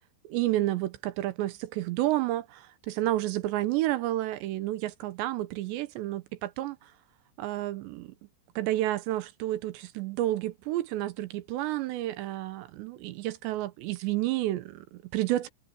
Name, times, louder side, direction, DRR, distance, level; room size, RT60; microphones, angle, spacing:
voice 1, 0.2-6.8 7.4-8.1 8.6-15.5, right 15 dB, 80° right, 3.0 m, -30 dB
omnidirectional pair, 5.3 m